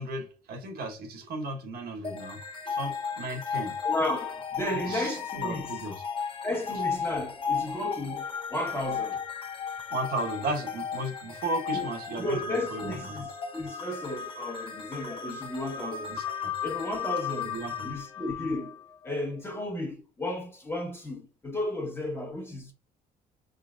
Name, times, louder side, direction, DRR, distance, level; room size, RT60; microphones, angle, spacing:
voice 1, 0.0-2.4 2.6-3.7 4.9-6.0 9.9-13.2 16.1-16.5 17.4-17.9, right 1 dB, 65° right, 1.3 m, -35 dB
sound 1, 2.0-19.2, left 7 dB, 30° left, 1.0 m, -35 dB
voice 2, 3.8-5.7 6.4-8.2 8.5-9.2 11.7-11.8 12.2-16.2 16.6-18.8 19.0-22.7, left 1 dB, 15° left, 1.4 m, -33 dB
5.5 x 3.8 x 2.5 m
cardioid pair, 110°, 17 cm